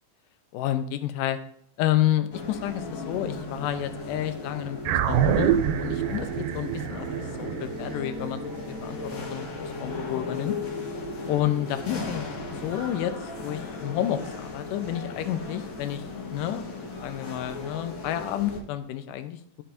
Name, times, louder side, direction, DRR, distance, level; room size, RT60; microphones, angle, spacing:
voice 1, 0.5-1.4 1.8-7.1 7.4-10.5 11.3-12.2 12.6-13.1 13.4-16.0 16.3-16.6 17.0-19.4, left 12 dB, 80° left, 9 dB, 2.1 m, -30 dB
sound 1, 2.3-18.6, left 3 dB, 65° left, 1.2 m, -36 dB
sound 2, 4.9-9.5, right 10 dB, 90° right, 2.4 m, -27 dB
13.5 x 5.6 x 2.6 m, 0.65 s
omnidirectional pair, 4.1 m